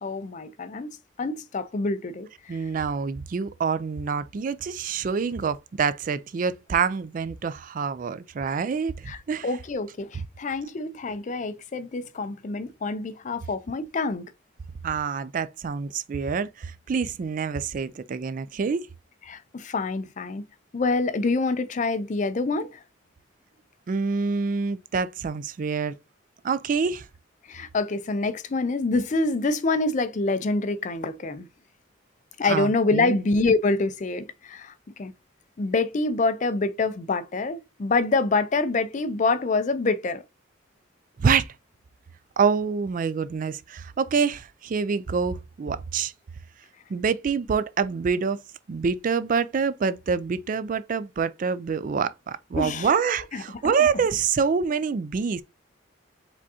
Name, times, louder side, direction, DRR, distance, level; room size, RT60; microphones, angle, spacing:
voice 1, 0.0-2.6 9.1-14.3 19.3-20.4 20.7-22.8 27.5-31.5 32.4-35.1 35.6-40.2 52.6-52.9 53.3-54.0, left 3 dB, 40° left, 0.4 m, -26 dB
voice 2, 2.5-9.5 14.8-18.8 23.9-26.0 26.4-27.1 32.5-33.2 41.2-41.5 42.4-46.1 46.9-48.4 48.7-55.4, right 5 dB, 45° right, 0.3 m, -26 dB
5.0 x 3.5 x 2.7 m
head